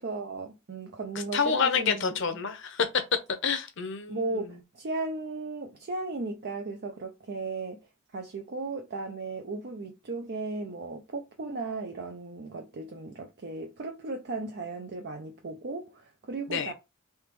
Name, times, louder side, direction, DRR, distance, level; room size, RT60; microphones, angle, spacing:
voice 1, 0.0-2.2 4.1-7.8 8.1-16.7, right 3 dB, 50° right, 0.5 m, -36 dB
voice 2, 1.3-2.9 3.4-4.4 16.5-16.7, left 6 dB, 60° left, 0.7 m, -28 dB
3.5 x 2.9 x 3.1 m
head